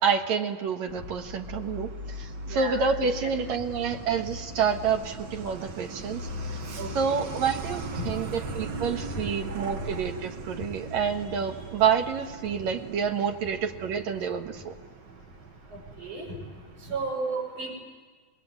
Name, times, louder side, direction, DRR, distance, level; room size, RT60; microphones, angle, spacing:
voice 1, 0.0-6.6 6.9-14.7, right 6 dB, 65° right, 5 dB, 2.7 m, -28 dB
Truck, 0.9-17.1, right 2 dB, 45° right, 1.6 m, -39 dB
voice 2, 2.5-2.8 3.2-3.3 6.8-7.4 8.0-8.1 15.7-16.4 16.8-17.7, right 3 dB, 85° right, 0 dB, 7.0 m, -34 dB
26.0 x 20.5 x 9.6 m, 1.4 s
omnidirectional pair, 3.5 m